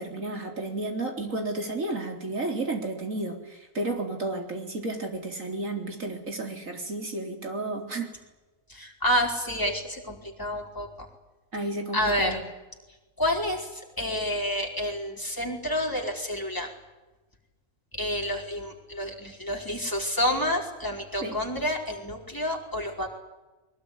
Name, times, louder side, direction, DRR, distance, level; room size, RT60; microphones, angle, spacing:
voice 1, 0.0-8.1 11.5-12.4 21.2-21.4, right 2 dB, 70° right, 3 dB, 4.3 m, -32 dB
voice 2, 8.7-10.9 11.9-12.4 13.2-16.7 17.9-23.1, left 1 dB, 15° left, 0 dB, 4.6 m, -29 dB
22.0 x 20.5 x 9.8 m, 1.1 s
omnidirectional pair, 1.4 m